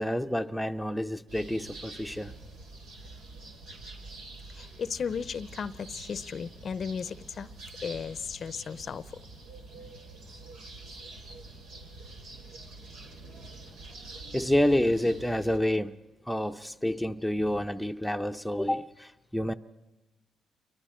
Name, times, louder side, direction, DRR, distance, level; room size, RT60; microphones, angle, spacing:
voice 1, 0.0-2.3 14.3-16.0 16.3-19.5, left 1 dB, ahead, 0.7 m, -28 dB
sound 1, 1.3-15.6, right 2 dB, 90° right, 3.2 m, -46 dB
voice 2, 4.6-7.5 7.8-9.2, left 6 dB, 50° left, 0.6 m, -35 dB
28.0 x 23.5 x 4.4 m
cardioid pair, 90°, 0 cm